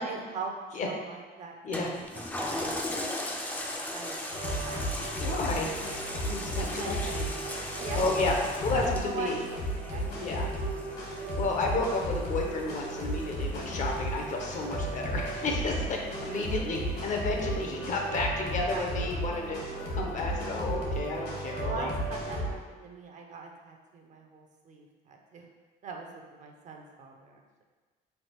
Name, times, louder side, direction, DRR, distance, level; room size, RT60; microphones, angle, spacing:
voice 1, 0.0-2.0 2.4-2.7 3.0-3.4 3.9-4.9 5.3-5.6 6.8-8.0 8.7-10.4 10.6-10.8 11.0-11.3 16.3-16.7 18.7-18.9 21.6-25.5 25.8-27.6, right 4 dB, 45° right, 2 dB, 0.6 m, -41 dB
Toilet flush, 1.7-16.5 17.0-17.1, left 1 dB, 10° left, 0.4 m, -39 dB
sound 1, 4.3-22.5, right 1 dB, 70° left, 1.4 m, -34 dB
voice 2, 5.2-5.7 6.3-7.1 7.9-9.4 10.2-10.5 11.4-19.6 19.9-21.9, left 3 dB, 50° left, 1 dB, 0.7 m, -32 dB
3.3 x 2.4 x 4.3 m, 1.3 s
cardioid pair, 110°, 17 cm